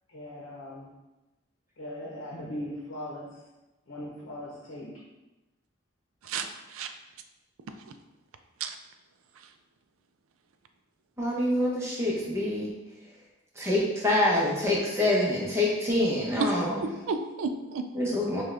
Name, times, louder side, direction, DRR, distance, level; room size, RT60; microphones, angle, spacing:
voice 1, 0.1-0.9 1.8-3.4 3.9-5.0, left 1 dB, 65° left, -4 dB, 0.8 m, -39 dB
voice 2, 6.2-6.9 7.9-8.0 8.6-8.8 9.3-9.5 16.4-16.5 17.1-17.9, right 4 dB, 85° right, 7 dB, 0.4 m, -32 dB
voice 3, 11.2-12.7 13.6-16.8 17.9-18.4, left 1 dB, 15° right, -4 dB, 0.8 m, -26 dB
6.1 x 2.3 x 3.3 m, 1.0 s
head